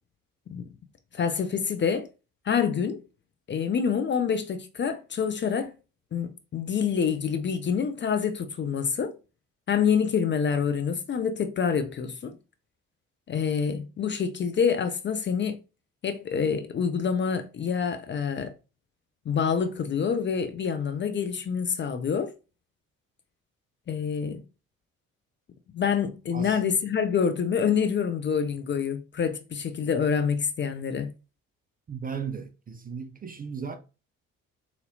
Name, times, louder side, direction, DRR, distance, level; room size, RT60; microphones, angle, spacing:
voice 1, 1.1-2.1 2.5-3.0 3.5-5.7 6.1-9.1 9.7-12.4 13.3-15.6 16.0-18.5 19.3-22.3 23.9-24.4 25.7-31.1, left 6 dB, 30° left, 0.5 m, -27 dB
voice 2, 31.9-33.8, right 6 dB, 20° right, 0.5 m, -36 dB
4.0 x 2.8 x 2.6 m
figure-of-eight pair, 45°, 40 cm